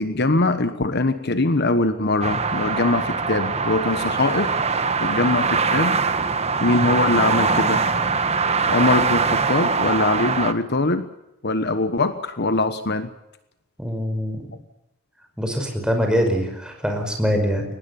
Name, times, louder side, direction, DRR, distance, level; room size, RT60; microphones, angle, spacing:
voice 1, 0.0-4.6 5.0-6.0 6.6-7.9 8.6-11.1 11.4-13.1, left 2 dB, 50° left, 11 dB, 1.2 m, -22 dB
sound 1, 2.2-10.5, right 4 dB, 30° right, 1.4 m, -22 dB
voice 2, 13.8-14.4 15.4-17.6, equal, 5° right, 3 dB, 5.4 m, -23 dB
23.0 x 19.5 x 7.0 m, 0.90 s
head